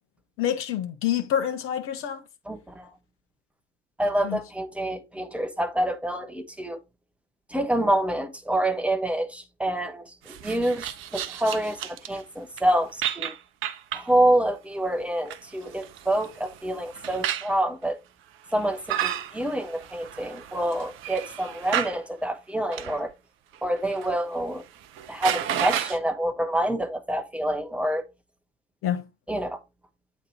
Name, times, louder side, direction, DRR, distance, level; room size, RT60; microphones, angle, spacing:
voice 1, 0.4-2.2 4.2-4.4 28.8-29.0, left 10 dB, 40° left, 1.2 m, -27 dB
voice 2, 2.5-2.9 4.0-6.8 7.5-10.8 11.1-13.3 13.9-18.0 18.5-23.1 23.6-24.6 25.1-28.0 29.3-29.6, right 1 dB, 5° right, 0.9 m, -27 dB
sound 1, 10.3-12.2 12.6-12.7 13.0-14.1 15.0-17.5 18.5-22.0 22.7-23.0 23.5-24.1 24.4-24.5 24.8-26.0, right 10 dB, 35° right, 0.7 m, -32 dB
8.4 x 3.2 x 4.3 m
figure-of-eight pair, 80°, 35 cm